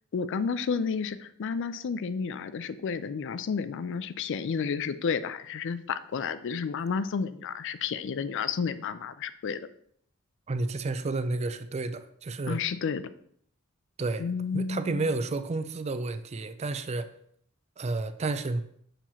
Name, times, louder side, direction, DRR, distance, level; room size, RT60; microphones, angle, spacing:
voice 1, 0.1-9.6 12.5-13.0 14.2-15.0, left 5 dB, 60° left, 13 dB, 0.4 m, -31 dB
voice 2, 10.5-12.6 14.0-14.2 14.5-17.1 17.8-18.6, right 3 dB, 30° right, 11 dB, 0.4 m, -31 dB
6.8 x 3.0 x 5.7 m, 0.66 s
head